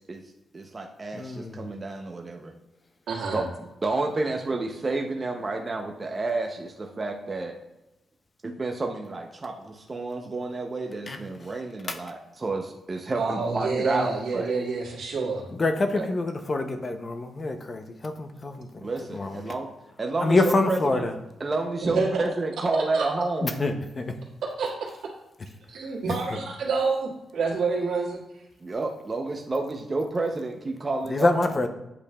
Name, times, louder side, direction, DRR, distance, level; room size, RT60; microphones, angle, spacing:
voice 1, 0.5-2.5 3.3-3.4 3.8-7.5 8.4-14.5 15.9-16.1 18.8-19.7 20.0-21.1 21.4-23.6 28.6-31.6, right 3 dB, 25° right, 2 dB, 0.5 m, -30 dB
voice 2, 1.1-1.6 11.1-11.2 11.9-12.0 15.6-18.7 19.1-19.4 20.2-21.1 23.4-24.1 31.1-31.7, left 2 dB, 30° left, 7 dB, 0.5 m, -26 dB
voice 3, 3.1-3.4 13.2-15.5 21.8-22.2 22.7-23.0 24.6-24.7 25.7-28.2, right 4 dB, 80° right, -3 dB, 1.6 m, -28 dB
8.4 x 5.2 x 2.2 m, 0.95 s
wide cardioid pair, 155°, 0 cm